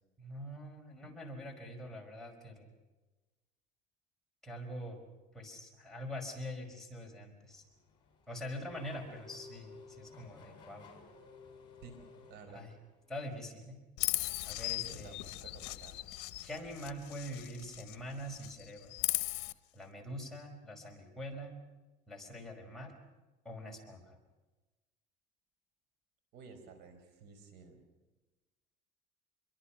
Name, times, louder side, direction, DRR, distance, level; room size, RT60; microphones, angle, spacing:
voice 1, 0.2-2.7 4.4-5.0 5.3-7.6 8.3-10.8 12.5-12.7 13.1-13.8 14.4-15.2 16.4-18.9 19.7-21.6 22.1-22.9 23.4-24.2, equal, ahead, -1 dB, 5.1 m, -44 dB
Race car auto racing / Accelerating revving vroom, 7.5-13.1, left 4 dB, 25° left, 7.0 m, -56 dB
voice 2, 12.3-12.6 14.9-16.0 26.3-27.8, right 5 dB, 65° right, 8 dB, 4.9 m, -53 dB
Chirp tweet, 14.0-18.0 18.3-19.5, left 20 dB, 70° left, 1.0 m, -38 dB
27.5 x 23.0 x 6.0 m, 1.2 s
cardioid pair, 130°, 18 cm